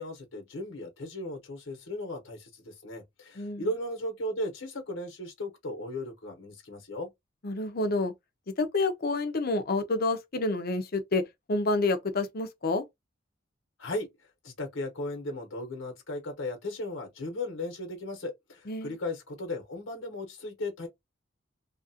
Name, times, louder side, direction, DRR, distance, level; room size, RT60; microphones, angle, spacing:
voice 1, 0.0-7.1 13.8-14.1 14.4-20.9, left 1 dB, 85° left, 1.1 m, -36 dB
voice 2, 3.4-3.7 7.4-8.1 8.6-11.2 11.5-12.8 18.7-18.9, left 2 dB, 50° left, 0.6 m, -28 dB
2.9 x 2.4 x 2.8 m
head